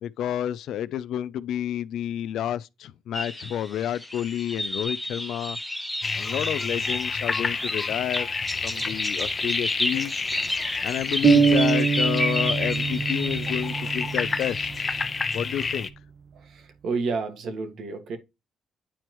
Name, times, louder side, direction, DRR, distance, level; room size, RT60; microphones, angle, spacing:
voice 1, 0.0-5.6 6.2-8.3 8.6-10.2 10.8-14.9 15.3-15.9, left 10 dB, 75° left, 0.4 m, -30 dB
sound 1, 3.1-15.0, left 1 dB, 5° left, 1.2 m, -32 dB
sound 2, 6.0-15.9, left 4 dB, 35° left, 0.8 m, -30 dB
sound 3, 11.2-15.0, right 5 dB, 40° right, 0.4 m, -24 dB
voice 2, 16.8-18.2, right 4 dB, 70° right, 1.8 m, -29 dB
10.0 x 4.5 x 3.1 m
cardioid pair, 90°, 0 cm